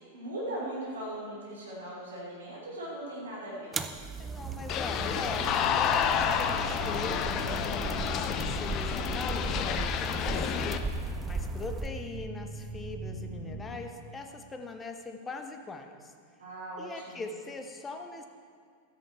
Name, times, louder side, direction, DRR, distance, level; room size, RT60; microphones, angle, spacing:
voice 1, 0.1-3.8 16.4-17.2, right 1 dB, 70° right, -5 dB, 3.2 m, -39 dB
sound 1, 3.7-11.9, right 2 dB, 15° right, 0.6 m, -36 dB
voice 2, 4.2-16.1 16.8-18.3, left 3 dB, 15° left, 6 dB, 0.9 m, -41 dB
sound 2, 4.7-10.8, left 8 dB, 35° left, 0.6 m, -30 dB
sound 3, 6.6-13.7, right 2 dB, 45° right, 2.2 m, -45 dB
13.0 x 10.0 x 4.5 m, 2.2 s
figure-of-eight pair, 90°, 0 cm